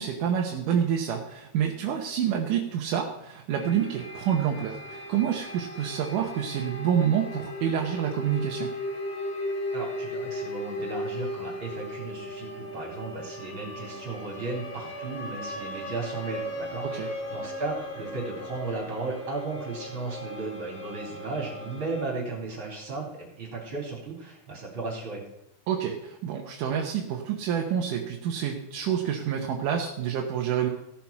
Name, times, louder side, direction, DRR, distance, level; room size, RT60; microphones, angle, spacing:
voice 1, 0.0-8.7 16.8-17.1 25.7-30.7, right 8 dB, 70° right, 1 dB, 2.2 m, -28 dB
sound 1, 3.5-22.1, left 1 dB, 45° left, 2.8 m, -37 dB
voice 2, 9.7-25.2, right 3 dB, 35° right, -2 dB, 4.1 m, -35 dB
16.0 x 5.9 x 5.9 m, 0.82 s
omnidirectional pair, 4.5 m